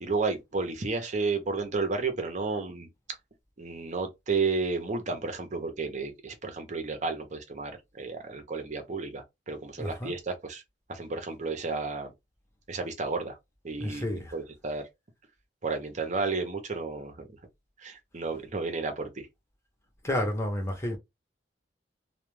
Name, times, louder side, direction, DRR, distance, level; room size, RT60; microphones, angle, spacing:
voice 1, 0.0-2.9 3.6-10.6 10.9-12.1 12.7-13.4 13.6-14.9 15.6-17.3 17.8-19.3, right 4 dB, 45° right, 0.6 m, -32 dB
voice 2, 9.8-10.1 13.8-14.3 20.0-21.0, left 1 dB, 15° left, 0.7 m, -30 dB
2.2 x 2.2 x 3.1 m
head